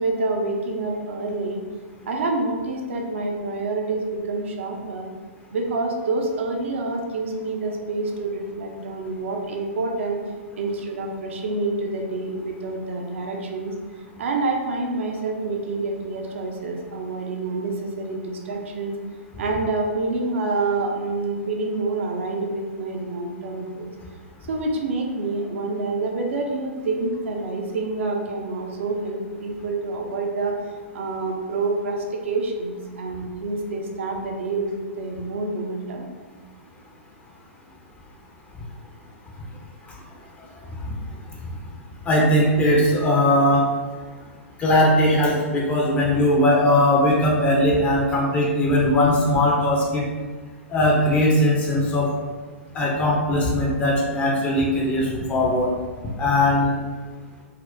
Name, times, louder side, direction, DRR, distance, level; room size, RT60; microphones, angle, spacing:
voice 1, 0.0-1.6 2.1-5.1 5.5-10.2 10.6-18.9 19.4-23.9 24.5-30.5 30.9-36.0, right 3 dB, 60° right, 2 dB, 0.5 m, -27 dB
voice 2, 42.1-43.7 44.6-50.0 50.7-52.1 52.7-55.7 56.2-56.7, left 1 dB, 20° left, -3 dB, 0.5 m, -19 dB
4.1 x 2.0 x 2.6 m, 1.4 s
figure-of-eight pair, 115°, 7 cm